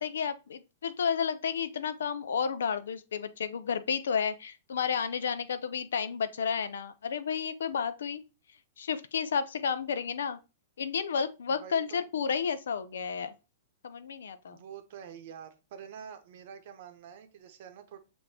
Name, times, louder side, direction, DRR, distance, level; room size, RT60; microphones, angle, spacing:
voice 1, 0.0-8.2 8.8-10.4 10.8-13.3 13.8-14.6, left 6 dB, 80° left, 0.4 m, -31 dB
voice 2, 11.5-12.0 14.5-18.0, right 8 dB, 60° right, 0.7 m, -47 dB
6.7 x 2.6 x 2.8 m
hypercardioid pair, 115°, 0 cm